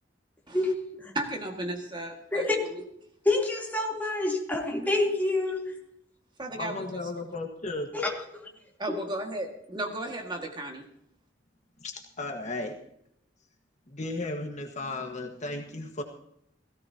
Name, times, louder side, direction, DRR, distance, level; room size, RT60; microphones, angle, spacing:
voice 1, 1.1-2.8 4.7-4.9 6.4-7.1 8.8-10.9, right 1 dB, 25° right, 1.9 m, -35 dB
voice 2, 3.2-5.7 7.9-8.5 8.9-9.0, left 2 dB, 10° left, 3.2 m, -27 dB
voice 3, 6.6-7.9 11.8-12.8 13.9-16.0, left 2 dB, 40° left, 1.6 m, -35 dB
17.5 x 16.5 x 2.9 m
head